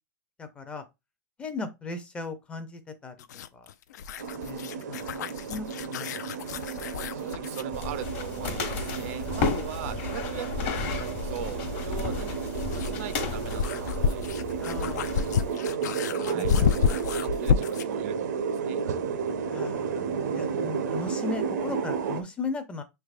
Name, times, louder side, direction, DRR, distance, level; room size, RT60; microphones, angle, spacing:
voice 1, 0.4-0.8 1.4-3.1 3.5-3.7 4.5-6.6 7.2-7.4 9.3-9.4 14.6-15.5 16.3-16.7 19.5-20.1 20.4-22.8, left 4 dB, 10° left, 0.4 m, -38 dB
sound 1, 3.2-7.7 10.1-10.2 12.2-18.0, left 7 dB, 85° left, 0.4 m, -29 dB
sound 2, 4.2-22.2, right 6 dB, 90° right, 0.7 m, -32 dB
voice 2, 7.1-10.5 10.9-14.8 16.2-18.8, right 10 dB, 55° right, 0.4 m, -40 dB
sound 3, 7.7-15.5, left 4 dB, 45° left, 1.0 m, -33 dB
5.8 x 3.3 x 2.4 m
supercardioid pair, 160°, 9 cm